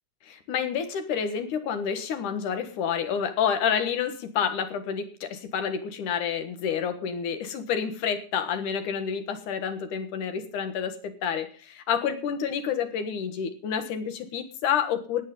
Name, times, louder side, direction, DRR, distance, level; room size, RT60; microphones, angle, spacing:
voice 1, 0.2-15.2, left 7 dB, 75° left, 9 dB, 2.9 m, -29 dB
17.5 x 8.4 x 5.4 m, 0.41 s
omnidirectional pair, 3.7 m